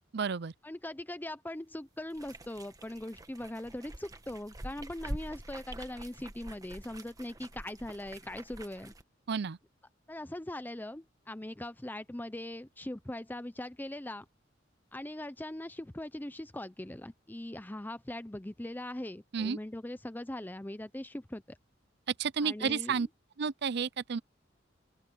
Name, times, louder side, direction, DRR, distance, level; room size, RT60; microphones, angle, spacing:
voice 1, 0.1-0.5 9.3-9.6 19.3-19.6 22.2-23.1 23.4-24.2, right 6 dB, 60° right, 0.5 m, -31 dB
voice 2, 0.6-8.9 10.1-14.2 14.9-21.6 22.4-23.1, left 1 dB, 10° left, 0.6 m, -41 dB
sound 1, 2.1-9.0, right 1 dB, 20° right, 1.3 m, -45 dB
open air
head